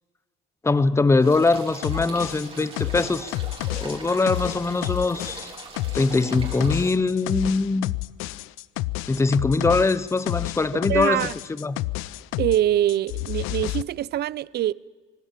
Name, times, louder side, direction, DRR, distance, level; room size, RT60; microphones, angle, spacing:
voice 1, 0.6-3.3 3.8-5.5 5.9-7.9 9.1-11.3 11.6-11.8, left 3 dB, 15° left, 17 dB, 0.9 m, -22 dB
sound 1, 1.2-6.9, right 4 dB, 30° right, 5.2 m, -41 dB
sound 2, 1.8-12.6 12.9-13.8, left 19 dB, 85° left, 0.7 m, -30 dB
voice 2, 10.7-11.3 12.4-14.7, right 12 dB, 55° right, 23 dB, 0.6 m, -24 dB
25.5 x 19.0 x 7.5 m, 1.4 s
cardioid pair, 115°, 20 cm